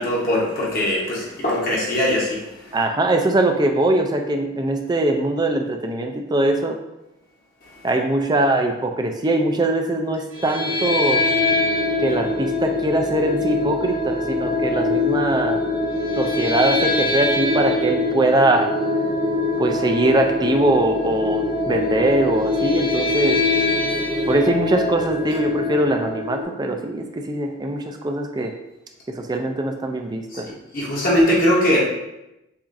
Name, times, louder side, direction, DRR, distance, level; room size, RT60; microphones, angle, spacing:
voice 1, 0.0-2.8 30.3-30.4 30.7-31.8, left 1 dB, 45° left, -5 dB, 0.8 m, -21 dB
voice 2, 2.7-6.8 7.8-11.2 12.0-15.6 16.2-18.7 19.6-23.4 24.3-28.5 29.2-30.5, right 2 dB, 20° right, 4 dB, 0.3 m, -21 dB
sound 1, 10.3-26.4, left 2 dB, 60° right, 1.2 m, -23 dB
6.9 x 2.4 x 2.5 m, 0.92 s
head